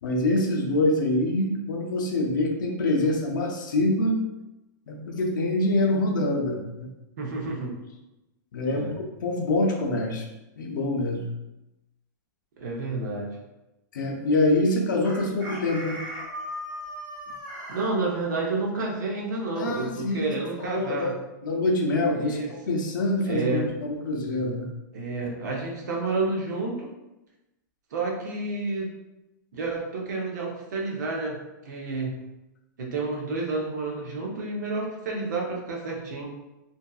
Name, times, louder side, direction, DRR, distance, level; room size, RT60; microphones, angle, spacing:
voice 1, 0.0-4.2 4.9-6.9 8.5-10.3 10.6-11.3 13.9-16.0 19.6-21.2 21.4-24.7, left 1 dB, 75° left, 2 dB, 0.6 m, -25 dB
voice 2, 7.2-7.7 8.6-8.9 12.6-13.3 17.7-21.1 22.2-22.5 23.3-23.7 24.9-26.9 27.9-28.9 29.5-31.4 31.6-32.2 32.8-36.3, right 3 dB, 60° right, -1 dB, 0.7 m, -30 dB
Chicken rooster, 15.0-17.9, equal, 25° right, 1.4 m, -37 dB
2.6 x 2.5 x 2.3 m, 0.98 s
supercardioid pair, 180°, 10 cm